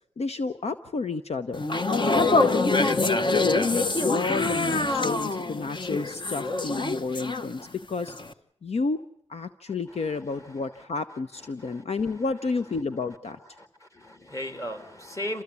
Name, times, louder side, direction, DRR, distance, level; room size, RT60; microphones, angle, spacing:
voice 1, 0.2-1.7 2.2-7.6 7.9-8.1 8.6-9.0 9.3-13.4, left 4 dB, 65° left, 10 dB, 0.9 m, -30 dB
sound 1, 1.5-7.8 8.1-8.3, left 2 dB, 45° left, 1.1 m, -25 dB
voice 2, 13.6-15.4, left 1 dB, 25° left, 7 dB, 2.8 m, -36 dB
28.5 x 14.5 x 8.3 m, 0.72 s
wide cardioid pair, 75°, 11 cm